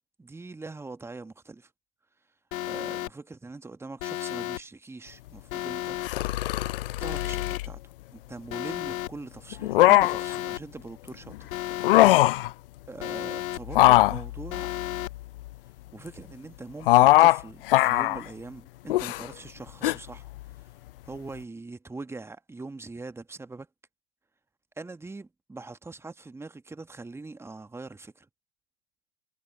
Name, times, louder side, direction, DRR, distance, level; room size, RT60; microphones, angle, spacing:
voice 1, 0.2-1.7 2.7-6.0 7.0-11.5 12.9-14.7 15.9-20.3 21.0-23.7 24.8-28.3, right 3 dB, 5° right, 1.4 m, -42 dB
Alarm, 2.5-3.1 4.0-4.6 5.5-6.1 7.0-7.6 8.5-9.1 10.0-10.6 11.5-12.1 13.0-13.6 14.5-15.1, left 14 dB, 55° left, 1.2 m, -33 dB
sound 1, 6.0-7.7 9.5-10.4 11.7-12.5 13.7-15.5 16.8-17.4 17.7-18.2 18.9-19.3 19.8-19.9, left 17 dB, 35° left, 0.4 m, -21 dB
hypercardioid pair, 115°, 49 cm